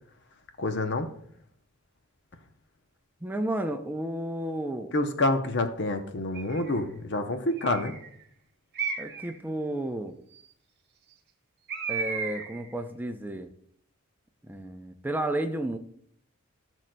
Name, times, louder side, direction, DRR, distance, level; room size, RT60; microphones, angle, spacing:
voice 1, 0.6-1.1 4.9-7.9, left 2 dB, 55° left, 7 dB, 0.7 m, -27 dB
voice 2, 3.2-4.9 9.0-10.2 11.9-13.5 14.4-15.8, right 1 dB, 10° right, 7 dB, 0.5 m, -32 dB
Bird, 6.3-6.8 7.6-8.1 8.7-9.4 11.7-12.7, right 5 dB, 50° right, 1.1 m, -34 dB
14.5 x 6.3 x 2.2 m, 0.65 s
head